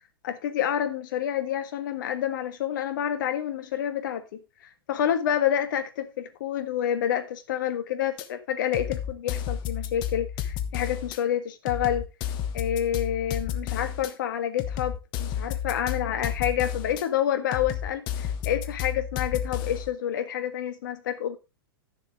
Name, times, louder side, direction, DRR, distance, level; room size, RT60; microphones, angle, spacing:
voice 1, 0.2-12.0 12.5-21.4, left 10 dB, 60° left, 1.5 m, -28 dB
sound 1, 8.2-8.3 8.7-11.2 11.7-14.1 14.6-17.0 17.5-19.9, left 9 dB, 40° left, 1.2 m, -32 dB
12.0 x 7.2 x 3.7 m
figure-of-eight pair, 100°, 12 cm